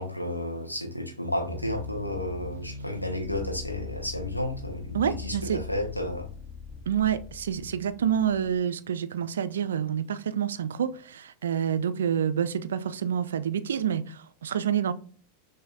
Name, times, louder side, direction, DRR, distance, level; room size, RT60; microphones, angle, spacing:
voice 1, 0.0-6.3, left 1 dB, 85° left, 0.9 m, -32 dB
sound 1, 1.4-8.6, left 4 dB, 20° left, 1.0 m, -41 dB
voice 2, 4.9-5.6 6.9-14.9, right 8 dB, 65° right, 0.4 m, -28 dB
6.1 x 2.7 x 2.5 m
figure-of-eight pair, 90°, 0 cm